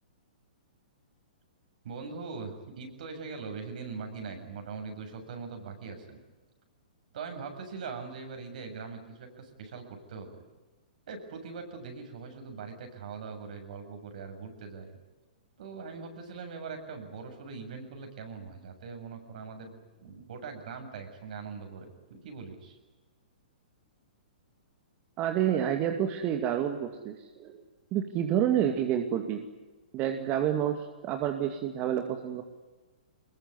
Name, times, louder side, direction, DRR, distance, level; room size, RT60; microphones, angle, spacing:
voice 1, 1.8-6.2 7.1-10.4 11.1-15.0 15.6-19.7 20.0-22.8, right 5 dB, 65° right, 4 dB, 7.6 m, -41 dB
voice 2, 25.2-27.6 27.9-29.5 29.9-32.4, right 10 dB, 35° right, 5 dB, 2.3 m, -29 dB
24.0 x 21.5 x 9.8 m, 1.2 s
hypercardioid pair, 130°, 5 cm